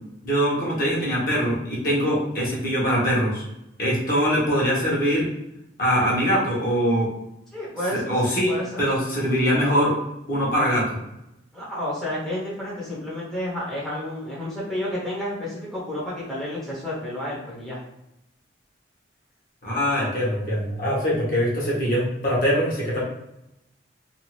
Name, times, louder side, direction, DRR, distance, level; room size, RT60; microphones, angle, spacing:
voice 1, 0.2-3.4 3.8-5.3 5.8-7.1 7.9-10.0 10.3-11.0 19.6-23.0, equal, 50° left, -5 dB, 1.0 m, -23 dB
voice 2, 7.5-8.1 8.5-8.8 11.5-17.8, left 1 dB, ahead, -8 dB, 0.7 m, -30 dB
2.6 x 2.4 x 3.0 m, 0.86 s
head